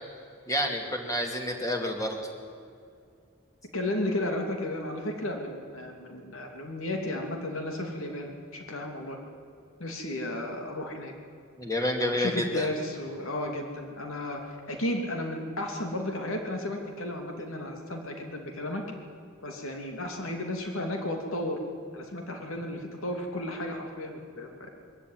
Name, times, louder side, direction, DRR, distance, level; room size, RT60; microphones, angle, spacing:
voice 1, 0.5-2.2 11.6-12.7, left 1 dB, 15° left, 3 dB, 2.5 m, -29 dB
voice 2, 3.7-9.2 9.8-11.1 12.1-18.8 19.4-21.6 21.9-24.7, left 1 dB, 80° left, 3 dB, 2.8 m, -33 dB
21.5 x 14.0 x 9.4 m, 2.3 s
head